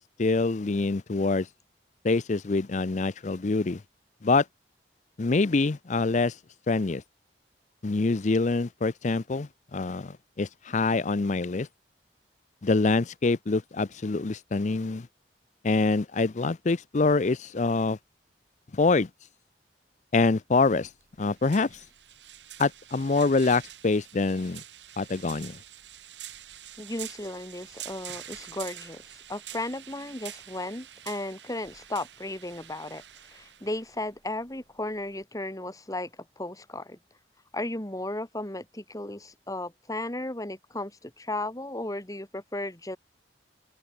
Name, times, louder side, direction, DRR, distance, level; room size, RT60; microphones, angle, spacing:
voice 1, 0.2-1.5 2.0-3.8 4.2-4.4 5.2-6.4 6.7-7.0 7.8-11.7 12.6-15.1 15.6-18.0 18.7-19.1 20.1-20.9 21.2-21.8 22.6-24.6 25.0-25.6, left 3 dB, 45° left, 0.6 m, -25 dB
sound 1, 20.6-35.2, right 11 dB, 90° right, 2.7 m, -46 dB
voice 2, 26.8-37.0 37.5-43.0, left 1 dB, 20° left, 2.7 m, -35 dB
head